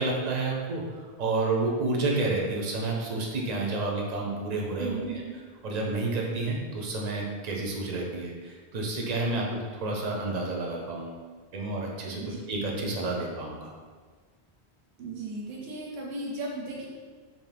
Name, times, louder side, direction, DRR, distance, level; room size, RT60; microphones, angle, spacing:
voice 1, 0.0-5.2 5.6-11.2 11.5-12.2 12.5-13.7, right 2 dB, 55° right, -1 dB, 0.5 m, -30 dB
voice 2, 4.8-5.4 12.2-12.5 15.0-16.9, right 2 dB, 85° right, -3 dB, 0.9 m, -36 dB
2.6 x 2.1 x 3.2 m, 1.5 s
omnidirectional pair, 1.1 m